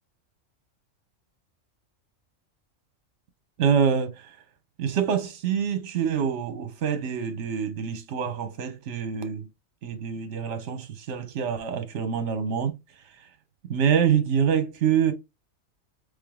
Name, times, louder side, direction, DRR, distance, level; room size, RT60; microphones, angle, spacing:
voice 1, 3.6-4.3 4.8-9.5 9.8-12.7 13.7-15.1, right 7 dB, 65° right, 1.1 m, -26 dB
3.7 x 3.4 x 3.6 m
omnidirectional pair, 1.4 m